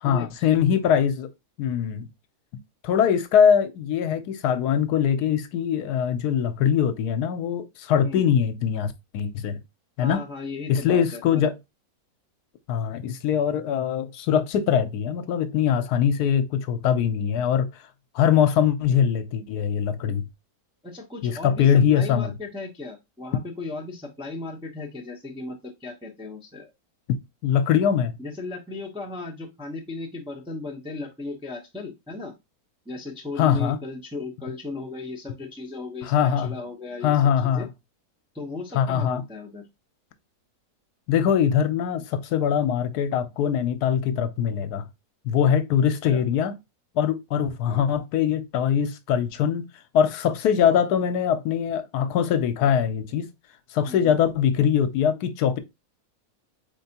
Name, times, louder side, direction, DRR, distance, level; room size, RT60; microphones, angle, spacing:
voice 1, 0.0-1.3 1.6-2.1 2.8-9.6 10.0-10.2 10.7-11.5 12.7-17.7 18.1-20.3 21.2-22.3 27.1-27.2 27.4-28.2 33.4-33.8 36.0-36.5 37.0-37.7 38.7-39.2 41.1-44.8 45.2-46.6 47.0-49.7 49.9-53.3 53.7-55.6, left 8 dB, 80° left, 1.2 m, -22 dB
voice 2, 10.0-11.5 20.8-26.7 28.2-32.3 32.9-37.7 38.3-39.6 46.1-46.2 47.6-47.9 53.8-54.2, left 3 dB, 5° right, 0.4 m, -36 dB
4.4 x 3.4 x 2.8 m
omnidirectional pair, 1.7 m